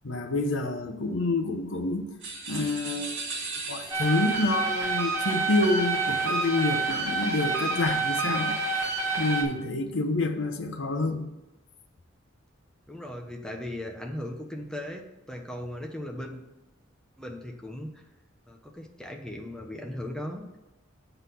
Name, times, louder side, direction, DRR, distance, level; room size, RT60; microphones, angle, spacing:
voice 1, 0.0-2.1 2.5-3.2 3.6-8.5 9.2-11.3, left 2 dB, 75° left, 4 dB, 0.9 m, -28 dB
sound 1, 2.2-4.4, right 3 dB, 65° right, 2.2 m, -37 dB
sound 2, 3.9-9.4, right 3 dB, 15° right, 1.7 m, -28 dB
voice 2, 12.9-16.4 17.2-18.0 18.5-20.6, left 1 dB, 5° left, 2 dB, 0.9 m, -38 dB
7.9 x 4.0 x 6.9 m, 1.0 s
head